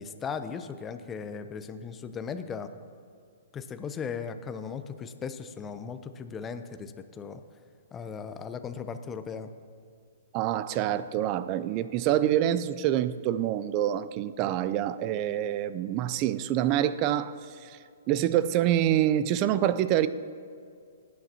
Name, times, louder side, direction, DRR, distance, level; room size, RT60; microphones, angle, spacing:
voice 1, 0.0-2.7 3.5-7.4 7.9-9.5, left 6 dB, 20° left, 9 dB, 0.6 m, -37 dB
voice 2, 10.3-17.3 17.6-17.8 18.1-20.1, right 11 dB, 35° right, 15 dB, 0.5 m, -26 dB
19.0 x 9.4 x 2.9 m, 2.3 s
hypercardioid pair, 125°, 0 cm